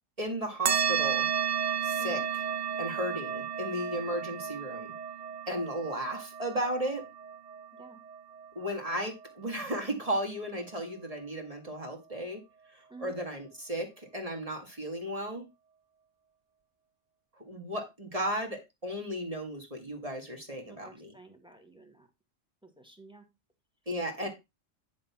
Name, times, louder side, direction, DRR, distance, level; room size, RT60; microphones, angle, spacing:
voice 1, 0.2-1.3 1.8-2.2 2.8-4.9 5.5-7.0 8.6-12.4 12.7-15.5 17.4-21.1 23.9-24.3, right 1 dB, 25° right, 2.2 m, -35 dB
sound 1, 0.7-9.6, right 8 dB, 50° right, 0.5 m, -33 dB
voice 2, 20.6-22.1 22.6-23.2 24.2-24.3, right 2 dB, 5° right, 1.7 m, -51 dB
10.5 x 3.8 x 5.8 m
omnidirectional pair, 1.3 m